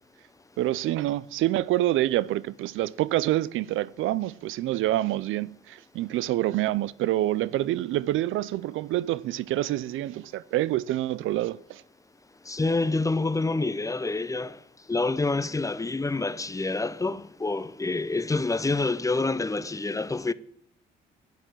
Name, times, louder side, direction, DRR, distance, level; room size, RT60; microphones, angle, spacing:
voice 1, 0.6-11.8, right 15 dB, 85° right, 0.5 m, -27 dB
voice 2, 12.5-14.6 14.9-20.3, left 3 dB, 15° left, 0.6 m, -27 dB
10.5 x 9.2 x 8.9 m
cardioid pair, 90°, 20 cm